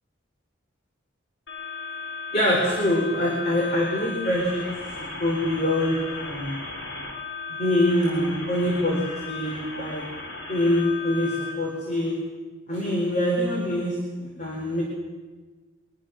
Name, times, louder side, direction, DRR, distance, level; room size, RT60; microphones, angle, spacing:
sound 1, 1.5-11.5, left 4 dB, 70° left, 3.8 m, -36 dB
voice 1, 2.3-4.7 5.2-6.6 7.5-10.0 10.5-12.1 12.7-14.8, left 1 dB, 40° left, -1 dB, 4.3 m, -24 dB
24.5 x 20.5 x 6.5 m, 1.3 s
head